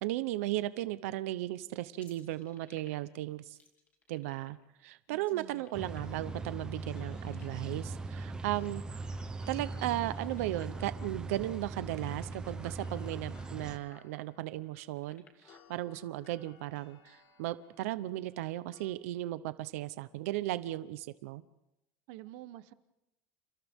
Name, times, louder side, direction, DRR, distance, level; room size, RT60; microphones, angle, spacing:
voice 1, 0.0-3.6 4.1-4.6 4.8-8.8 9.5-21.4, right 16 dB, 90° right, 13 dB, 0.9 m, -36 dB
sound 1, 2.0-3.2 3.5-4.6 5.2-6.4 6.8-7.8 8.4-9.6 10.0-11.0 11.2-11.3 11.6-12.5 13.2-13.3 13.6-14.1 14.8-15.7, left 5 dB, 20° left, 2.8 m, -61 dB
voice 2, 5.1-5.6 22.1-22.7, right 15 dB, 55° right, 13 dB, 1.0 m, -48 dB
sound 2, 5.5-18.9, left 6 dB, 65° left, 2.9 m, -64 dB
sound 3, 5.7-13.8, right 3 dB, 10° right, 0.8 m, -40 dB
30.0 x 30.0 x 3.7 m, 0.91 s
cardioid pair, 180°, 8 cm